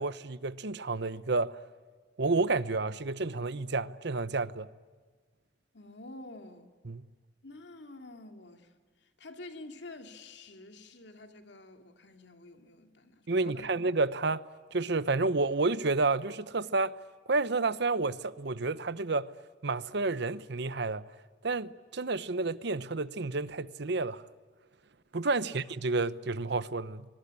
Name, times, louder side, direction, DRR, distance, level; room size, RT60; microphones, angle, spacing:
voice 1, 0.0-1.6 2.2-4.7 6.9-7.0 13.3-14.5 14.7-17.0 17.3-19.3 19.6-21.0 21.4-24.3 25.1-27.1, right 3 dB, 65° right, 0.9 m, -30 dB
voice 2, 5.7-6.7 7.4-13.8 25.4-25.6, left 2 dB, 65° left, 2.7 m, -49 dB
25.0 x 22.0 x 9.8 m
head